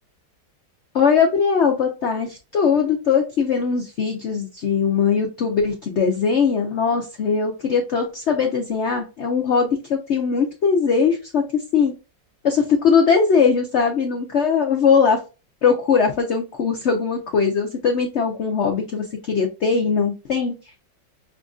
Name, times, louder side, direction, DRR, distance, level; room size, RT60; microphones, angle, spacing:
voice 1, 0.9-11.9 12.4-15.2 15.6-20.5, left 6 dB, 70° left, 2 dB, 0.6 m, -20 dB
6.1 x 2.5 x 2.4 m, 0.29 s
omnidirectional pair, 2.0 m